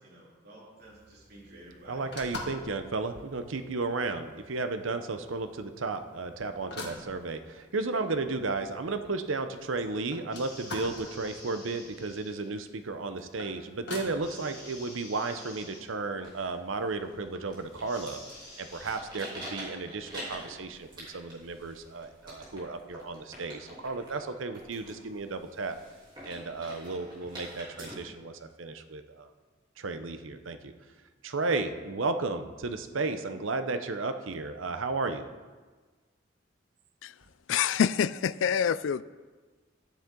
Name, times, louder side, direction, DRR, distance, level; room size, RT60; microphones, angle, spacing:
voice 1, 0.0-2.0, right 1 dB, 50° right, -7 dB, 3.3 m, -52 dB
sound 1, 0.8-16.1, left 2 dB, 55° left, 1.6 m, -47 dB
voice 2, 1.9-18.2 18.6-25.8 26.2-29.3 29.8-30.7 31.2-35.3, right 3 dB, 80° right, 8 dB, 0.8 m, -33 dB
sound 2, 10.3-12.5 14.2-15.8 17.8-19.0, left 1 dB, 20° left, 2.4 m, -49 dB
sound 3, 16.1-27.9, right 1 dB, 25° right, 3.2 m, -47 dB
voice 3, 37.5-39.0, left 8 dB, 75° left, 17 dB, 0.3 m, -26 dB
13.0 x 9.2 x 3.8 m, 1.4 s
head